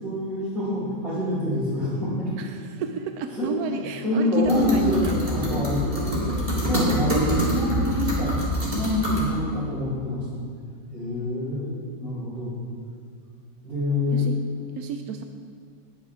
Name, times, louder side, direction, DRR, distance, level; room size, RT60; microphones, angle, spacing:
voice 1, 0.0-2.3 3.3-3.7 4.0-8.4 8.7-10.4 10.9-12.6 13.6-14.3, left 1 dB, 50° right, -11 dB, 4.4 m, -26 dB
voice 2, 2.4-5.2 14.1-14.4 14.8-15.2, right 6 dB, 70° right, 6 dB, 1.0 m, -31 dB
sound 1, 4.4-9.2, equal, 20° right, 3.3 m, -26 dB
19.0 x 10.0 x 3.6 m, 2.2 s
omnidirectional pair, 2.0 m